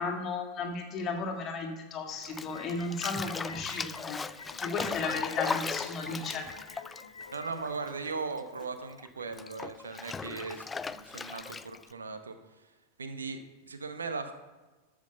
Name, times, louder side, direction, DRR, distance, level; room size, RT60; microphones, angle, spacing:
voice 1, 0.0-4.2 4.6-6.5, left 4 dB, 30° left, 3 dB, 1.9 m, -34 dB
sound 1, 2.2-7.5, left 5 dB, 70° left, 1.1 m, -47 dB
Bathtub (filling or washing), 2.2-8.1 8.4-11.9, left 5 dB, 15° left, 0.3 m, -38 dB
voice 2, 4.7-5.1 7.3-12.7 13.0-14.3, right 4 dB, 70° right, 8 dB, 1.0 m, -39 dB
13.5 x 6.4 x 5.5 m, 1.2 s
figure-of-eight pair, 90°, 0 cm